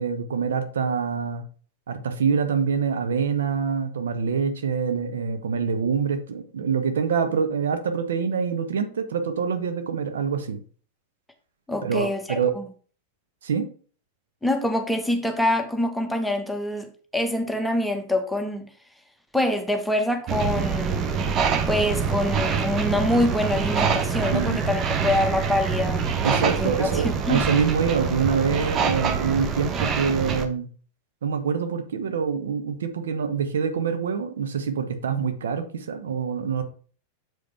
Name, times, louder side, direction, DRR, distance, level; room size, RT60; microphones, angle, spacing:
voice 1, 0.0-1.4 1.9-10.6 11.8-12.5 13.4-13.7 24.3-24.6 26.2-30.7 31.2-36.6, right 6 dB, 65° right, 0.9 m, -25 dB
voice 2, 11.7-12.6 14.4-18.7 19.3-21.1 21.7-27.4, left 1 dB, ahead, 1.2 m, -25 dB
sound 1, 20.3-30.5, right 6 dB, 30° right, 0.9 m, -25 dB
7.6 x 5.0 x 3.4 m
figure-of-eight pair, 90°, 0 cm